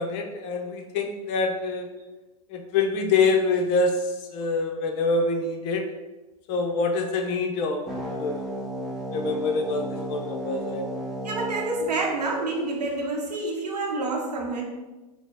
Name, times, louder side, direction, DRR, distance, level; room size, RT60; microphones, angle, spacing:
voice 1, 0.0-1.9 2.5-5.9 6.5-7.8 8.1-8.5 9.1-11.2, left 3 dB, 50° left, 4 dB, 0.6 m, -26 dB
sound 1, 7.9-12.9, equal, ahead, 0.8 m, -34 dB
voice 2, 11.2-14.6, right 2 dB, 90° right, 0 dB, 0.8 m, -28 dB
3.9 x 2.0 x 3.5 m, 1.1 s
hypercardioid pair, 100°, 20 cm